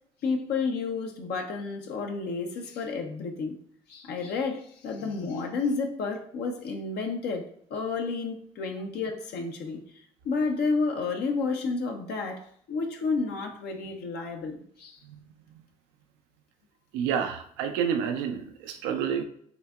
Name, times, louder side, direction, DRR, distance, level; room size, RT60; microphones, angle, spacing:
voice 1, 0.2-3.6 3.9-9.8 10.2-15.0, left 4 dB, 70° left, 0.7 m, -31 dB
voice 2, 16.9-19.2, right 7 dB, 80° right, 0.4 m, -29 dB
5.7 x 2.7 x 2.3 m
hypercardioid pair, 55°, 18 cm